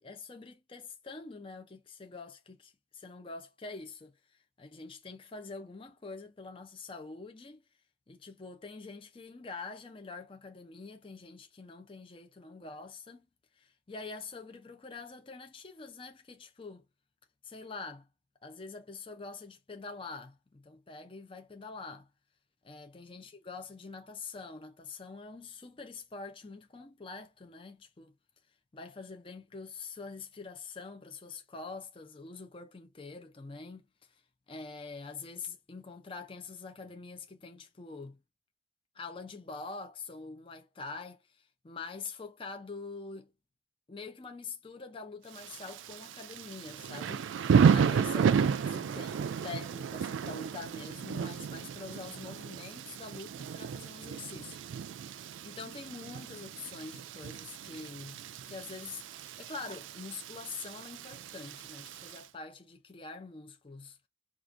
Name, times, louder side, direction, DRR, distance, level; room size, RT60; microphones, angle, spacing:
voice 1, 0.0-7.6 8.1-13.3 13.6-16.9 17.4-18.1 18.4-22.1 22.7-28.1 28.7-33.9 34.5-38.2 38.9-43.3 43.9-47.3 47.7-54.6 54.9-64.1, left 4 dB, 25° left, 0.5 m, -45 dB
Thunder / Rain, 45.3-62.2, right 6 dB, 70° right, 0.3 m, -32 dB
4.7 x 2.4 x 2.5 m
head